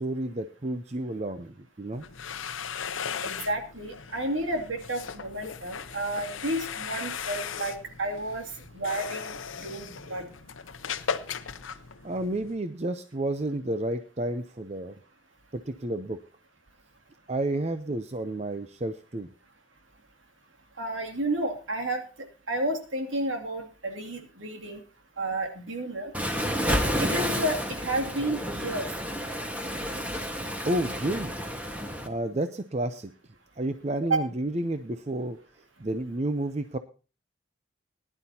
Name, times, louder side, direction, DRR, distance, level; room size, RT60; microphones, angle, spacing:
voice 1, 0.0-2.1 9.8-9.9 12.0-15.0 15.5-16.2 17.3-19.3 30.7-31.3 32.0-33.1 33.6-35.4 35.8-36.8, right 1 dB, 35° right, 9 dB, 0.6 m, -31 dB
sound 1, 1.9-12.6, left 7 dB, 90° left, 0.8 m, -37 dB
voice 2, 3.2-8.4 8.7-10.3 20.8-22.0 22.5-24.8 25.2-26.1 27.0-28.9 34.1-34.2, right 1 dB, 85° right, 4 dB, 2.5 m, -31 dB
Waves surf, 26.1-32.1, equal, 5° right, 1.4 m, -30 dB
19.5 x 11.0 x 2.8 m, 0.34 s
head